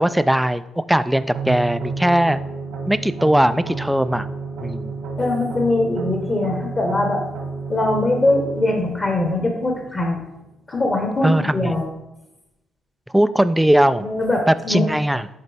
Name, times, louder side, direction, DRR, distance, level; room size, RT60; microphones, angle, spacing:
voice 1, 0.0-2.4 2.9-4.3 4.6-4.9 11.2-11.7 13.1-14.1 14.5-15.3, right 1 dB, 5° right, 13 dB, 0.3 m, -19 dB
sound 1, 1.3-10.3, right 4 dB, 90° right, 1.7 m, -31 dB
voice 2, 5.2-7.2 7.7-10.2 10.7-11.8 14.0-14.8, left 2 dB, 35° left, 1 dB, 1.3 m, -21 dB
11.0 x 4.0 x 3.5 m, 0.91 s
cardioid pair, 90°, 0 cm